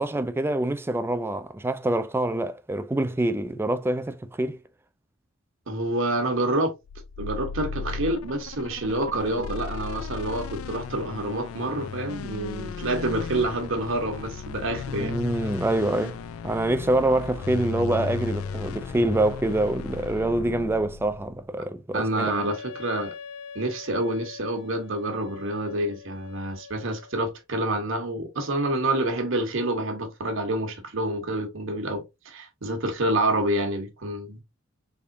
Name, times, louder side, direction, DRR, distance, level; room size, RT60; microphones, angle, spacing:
voice 1, 0.0-4.6 14.9-16.2 16.4-22.3, right 1 dB, 10° right, 0.3 m, -25 dB
voice 2, 5.7-6.7 7.2-15.1 21.9-23.1 23.5-34.4, right 1 dB, 65° right, 1.1 m, -28 dB
sound 1, 6.8-21.4, left 5 dB, 90° left, 0.4 m, -36 dB
Wind instrument woodwind instrument, 22.2-27.2, left 6 dB, 60° left, 0.7 m, -43 dB
3.6 x 3.5 x 2.6 m
head